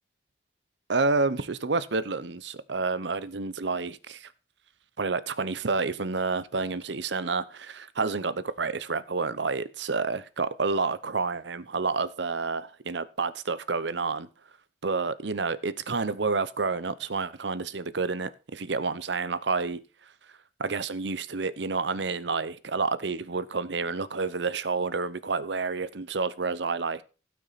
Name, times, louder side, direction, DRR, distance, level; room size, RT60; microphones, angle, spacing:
voice 1, 0.9-4.3 5.0-14.3 14.8-19.8 20.6-27.0, right 4 dB, 75° right, 0.8 m, -29 dB
16.5 x 6.1 x 4.1 m
head